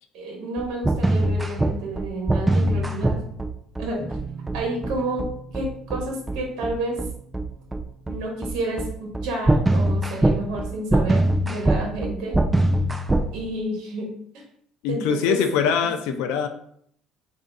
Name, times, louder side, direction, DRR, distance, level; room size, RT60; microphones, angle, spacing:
voice 1, 0.1-3.2 3.8-4.2 4.5-5.3 5.5-7.0 8.1-12.4 13.3-14.1 14.3-14.4 14.9-15.4 15.8-16.2, right 1 dB, 70° right, 0 dB, 1.1 m, -30 dB
sound 1, 0.6-13.3, right 1 dB, 10° right, 0.4 m, -22 dB
sound 2, 4.0-9.6, right 4 dB, 30° right, 1.1 m, -43 dB
voice 2, 14.8-16.5, left 7 dB, 85° left, 6 dB, 0.4 m, -23 dB
3.4 x 2.5 x 3.9 m, 0.67 s
cardioid pair, 125°, 0 cm